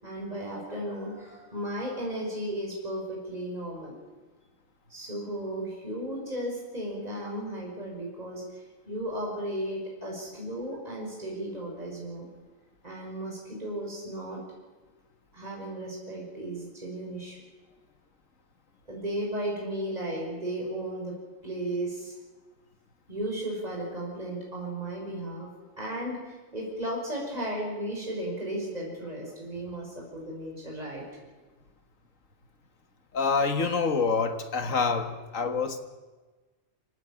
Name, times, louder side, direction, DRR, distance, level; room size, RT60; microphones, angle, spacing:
voice 1, 0.0-3.9 4.9-12.3 12.8-14.4 15.3-17.4 18.9-21.2 21.4-22.1 23.1-25.5 25.8-31.0, right 1 dB, 30° right, -3 dB, 6.1 m, -35 dB
voice 2, 33.1-35.8, left 4 dB, 80° left, 8 dB, 2.1 m, -26 dB
26.0 x 18.0 x 8.9 m, 1.3 s
omnidirectional pair, 1.3 m